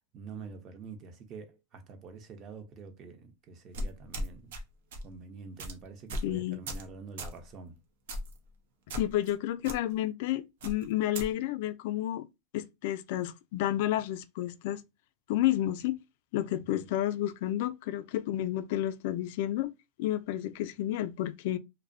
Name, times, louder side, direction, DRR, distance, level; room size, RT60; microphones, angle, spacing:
voice 1, 0.1-4.6 5.0-7.8 16.7-16.9, right 4 dB, 35° right, 0.6 m, -46 dB
sound 1, 3.7-4.6 4.9-5.1 5.6-5.7 6.1-6.3 6.7-6.9 7.2-7.4 8.1-8.4 8.9-9.3 9.6-9.8 10.6-11.3, equal, 80° right, 0.6 m, -36 dB
voice 2, 6.2-6.6 8.9-12.3 12.5-14.8 15.3-16.0 16.3-19.7 20.0-21.6, left 13 dB, 65° left, 0.3 m, -31 dB
2.6 x 2.0 x 2.5 m
supercardioid pair, 135°, 0 cm